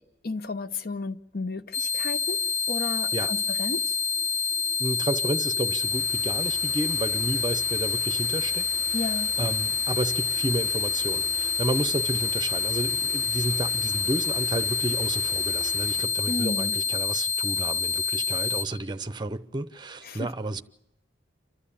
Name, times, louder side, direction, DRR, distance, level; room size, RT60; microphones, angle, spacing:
voice 1, 0.0-2.4 2.7-4.0 8.9-9.3 16.3-16.7 20.0-20.3, left 3 dB, 50° left, 0.9 m, -33 dB
sound 1, 1.7-18.6, left 5 dB, 25° left, 1.0 m, -27 dB
sound 2, 2.1-17.0, right 1 dB, 70° left, 5.0 m, -52 dB
voice 2, 4.8-8.9 9.4-20.6, right 2 dB, 25° right, 0.7 m, -31 dB
sound 3, 5.6-16.1, right 1 dB, 5° left, 1.6 m, -47 dB
29.0 x 12.5 x 8.6 m
head